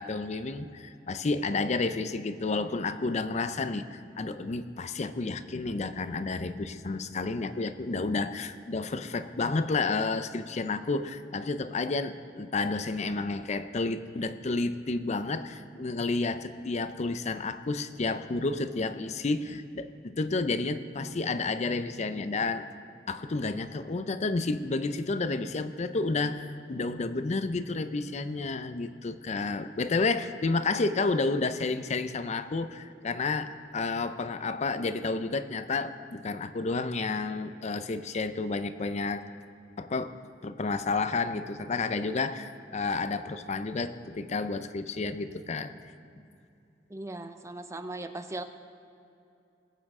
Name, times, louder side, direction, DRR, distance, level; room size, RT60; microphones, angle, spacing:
voice 1, 0.0-22.6 23.1-39.2 39.8-40.1 40.4-45.7, left 3 dB, 40° left, 11 dB, 0.5 m, -31 dB
voice 2, 46.9-48.4, right 2 dB, 15° right, 8 dB, 0.5 m, -38 dB
20.5 x 8.6 x 3.7 m, 2.6 s
head